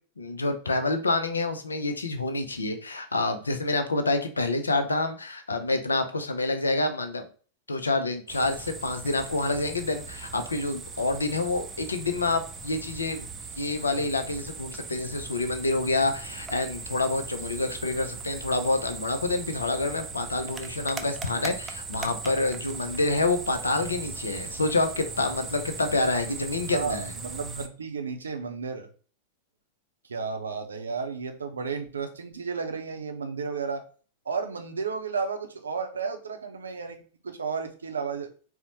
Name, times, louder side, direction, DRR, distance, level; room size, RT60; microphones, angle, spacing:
voice 1, 0.2-7.3 7.7-13.3 13.6-27.1, left 2 dB, 75° left, 7 dB, 0.4 m, -27 dB
sound 1, 8.3-27.7, right 4 dB, 20° right, 0.4 m, -39 dB
voice 2, 26.7-28.9 30.1-33.8 34.3-38.3, right 5 dB, 70° right, 6 dB, 0.5 m, -33 dB
4.0 x 2.1 x 2.7 m, 0.40 s
figure-of-eight pair, 90°, 0 cm